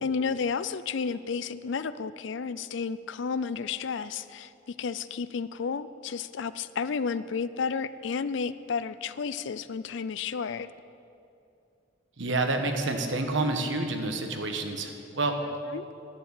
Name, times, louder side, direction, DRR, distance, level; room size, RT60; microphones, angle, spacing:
voice 1, 0.0-10.7 15.4-15.9, left 5 dB, 65° left, 15 dB, 0.4 m, -32 dB
voice 2, 12.2-15.3, right 2 dB, 65° right, 5 dB, 1.3 m, -28 dB
11.0 x 9.8 x 8.2 m, 2.6 s
head